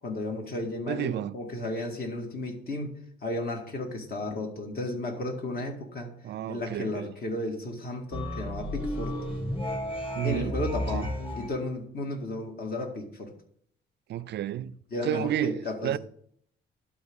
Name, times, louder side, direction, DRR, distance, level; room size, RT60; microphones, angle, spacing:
voice 1, 0.0-2.9 3.2-6.1 6.5-9.2 10.2-13.3 14.9-16.0, left 2 dB, 50° left, 1.9 m, -33 dB
voice 2, 0.9-1.4 6.2-7.1 10.1-10.6 10.9-11.1 14.1-14.8 15.0-16.0, right 12 dB, 60° right, 0.4 m, -31 dB
sound 1, 8.1-11.5, left 1 dB, 25° left, 2.1 m, -33 dB
12.0 x 4.1 x 3.6 m
cardioid pair, 90°, 20 cm